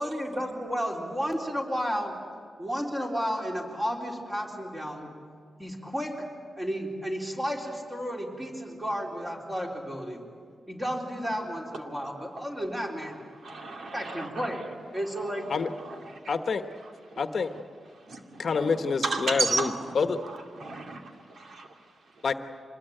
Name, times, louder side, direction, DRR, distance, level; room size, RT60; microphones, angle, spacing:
voice 1, 0.0-2.1 2.6-5.1 5.6-6.3 6.6-10.2 10.7-13.2 13.9-14.6 14.9-15.4, equal, 15° right, 0 dB, 3.9 m, -32 dB
voice 2, 11.7-12.5 13.1-13.2 13.4-14.7 15.2-16.3 16.8-17.2 17.5-17.6 17.9-19.9 20.2-22.2, right 3 dB, 65° right, 3 dB, 2.4 m, -35 dB
voice 3, 16.3-16.6 17.2-17.5 18.4-20.2 22.2-22.3, left 5 dB, 55° left, 8 dB, 1.1 m, -27 dB
25.5 x 20.0 x 9.0 m, 2.2 s
wide cardioid pair, 135°, 0 cm